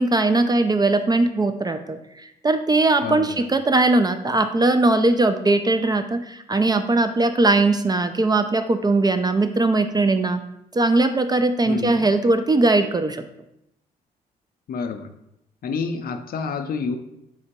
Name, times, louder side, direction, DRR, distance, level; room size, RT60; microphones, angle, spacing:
voice 1, 0.0-2.0 2.4-10.4 10.7-13.2, right 2 dB, 20° right, 8 dB, 0.3 m, -20 dB
voice 2, 3.0-3.4 11.7-12.0 14.7-15.1 15.6-17.0, left 5 dB, 50° left, 7 dB, 0.5 m, -28 dB
3.7 x 2.1 x 4.4 m, 0.81 s
hypercardioid pair, 40°, 19 cm